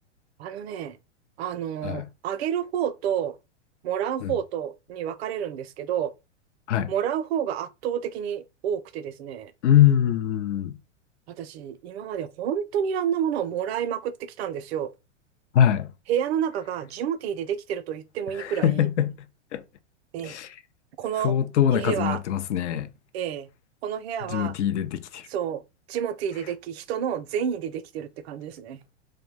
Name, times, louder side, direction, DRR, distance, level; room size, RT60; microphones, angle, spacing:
voice 1, 0.4-1.0 1.4-3.4 3.8-6.1 6.9-9.5 11.3-14.9 16.1-18.9 20.1-20.4 21.0-21.3 21.7-22.2 23.1-23.5 23.8-24.6 25.3-25.6 25.9-28.8, right 9 dB, 60° right, 0.5 m, -29 dB
voice 2, 9.6-10.8 15.5-15.9 18.3-19.3 19.5-19.6 20.2-20.5 21.2-22.9 24.3-25.3, left 10 dB, 75° left, 0.5 m, -23 dB
2.6 x 2.1 x 3.1 m
hypercardioid pair, 125°, 36 cm